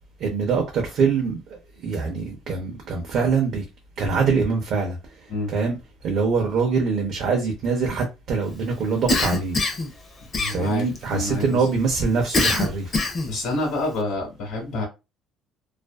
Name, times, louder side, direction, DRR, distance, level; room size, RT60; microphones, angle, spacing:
voice 1, 0.2-3.6 4.0-5.8 6.0-9.6 10.5-12.9, right 5 dB, 60° right, 0.6 m, -24 dB
Cough, 9.1-9.9 10.3-11.0 12.3-13.4, left 2 dB, 25° left, 0.5 m, -23 dB
voice 2, 10.4-10.8 11.1-11.6 13.2-14.8, left 2 dB, 70° left, 1.0 m, -27 dB
2.4 x 2.3 x 2.2 m
cardioid pair, 165°, 0 cm